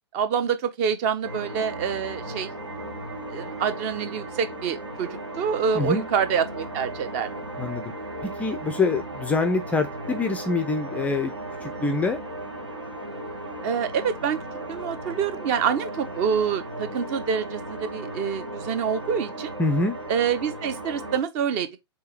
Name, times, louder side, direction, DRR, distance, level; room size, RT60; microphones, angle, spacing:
voice 1, 0.1-2.5 3.3-7.3 13.6-14.4 14.7-19.6 20.1-21.7, right 7 dB, 35° right, 0.7 m, -26 dB
sound 1, 1.2-21.2, right 1 dB, 90° right, 2.4 m, -36 dB
voice 2, 5.7-6.0 7.6-7.9 8.2-11.3 11.6-12.2 19.6-20.0, left 3 dB, 10° left, 0.4 m, -25 dB
3.7 x 3.2 x 4.2 m
figure-of-eight pair, 110°, 15 cm